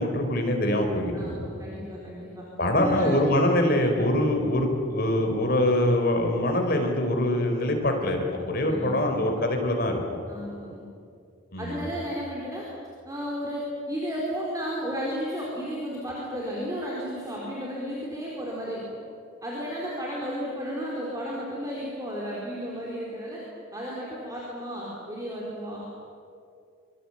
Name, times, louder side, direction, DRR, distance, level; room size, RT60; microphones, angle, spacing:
voice 1, 0.0-1.5 2.6-10.0 11.5-11.9, left 1 dB, 45° left, 3 dB, 4.1 m, -24 dB
voice 2, 1.1-2.4 2.7-3.2 8.7-9.2 10.3-10.8 11.6-12.6 13.1-18.8 19.4-23.4 23.7-25.9, equal, 15° right, -5 dB, 4.4 m, -33 dB
25.5 x 23.0 x 8.7 m, 2.4 s
head